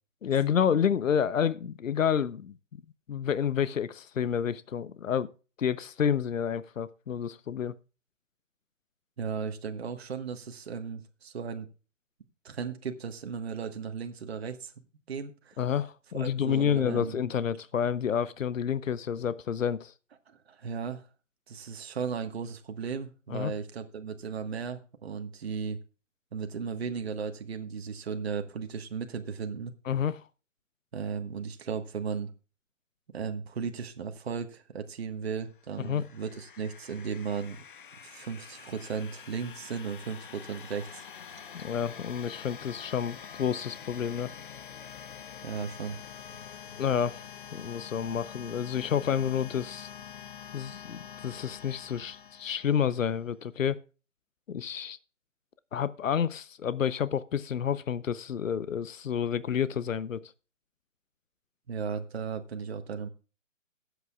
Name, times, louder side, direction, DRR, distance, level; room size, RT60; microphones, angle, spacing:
voice 1, 0.2-2.6 3.1-5.3 5.6-7.7 15.6-19.9 23.3-23.5 29.9-30.2 35.8-36.0 41.5-44.3 46.8-49.9 50.5-53.8 54.5-55.0 55.7-60.2, left 8 dB, 85° left, 0.8 m, -29 dB
voice 2, 9.2-11.7 12.4-14.7 15.1-15.6 16.1-17.2 20.3-21.1 21.5-25.8 26.3-29.7 30.9-32.3 33.1-37.6 38.0-41.0 45.4-46.0 61.7-63.1, right 6 dB, 55° right, 1.4 m, -36 dB
sound 1, 35.5-53.1, left 8 dB, 40° left, 0.9 m, -46 dB
23.0 x 8.2 x 2.3 m
hypercardioid pair, 165°, 38 cm